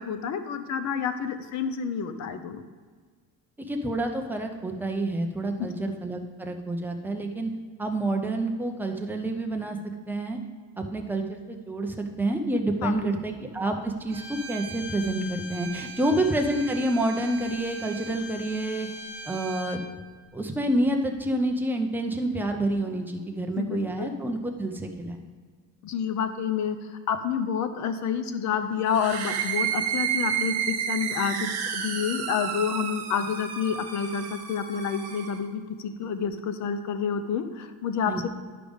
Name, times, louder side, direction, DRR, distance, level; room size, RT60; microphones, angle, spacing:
voice 1, 0.0-2.6 5.6-5.9 12.8-13.1 16.0-16.2 23.6-24.2 25.8-26.8 27.1-38.3, left 7 dB, 45° left, 10 dB, 0.6 m, -29 dB
voice 2, 3.7-7.5 7.8-9.8 10.1-10.4 10.8-18.9 19.3-19.8 20.3-25.2 38.1-38.2, right 1 dB, 5° right, 2 dB, 0.4 m, -28 dB
Bowed string instrument, 14.1-19.8, right 1 dB, 75° right, 1.3 m, -40 dB
sound 1, 28.9-35.4, right 8 dB, 40° right, 1.0 m, -31 dB
11.5 x 5.0 x 3.5 m, 1.5 s
cardioid pair, 180°, 38 cm